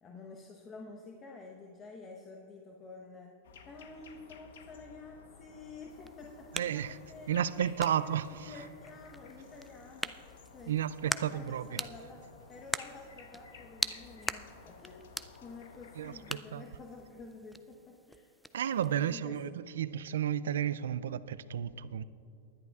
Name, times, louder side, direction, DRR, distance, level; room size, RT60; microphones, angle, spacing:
voice 1, 0.0-3.4 3.6-15.2 15.4-18.3 19.0-19.5, left 3 dB, 25° left, 0.9 m, -50 dB
sound 1, 3.4-16.4, left 5 dB, 80° left, 0.9 m, -54 dB
sound 2, 5.9-19.1, right 1 dB, ahead, 0.3 m, -43 dB
voice 2, 6.5-7.0 7.3-8.5 10.7-11.8 16.0-16.6 18.5-19.5 19.8-22.0, right 9 dB, 85° right, 0.3 m, -32 dB
19.5 x 11.0 x 2.4 m
hypercardioid pair, 120°, 0 cm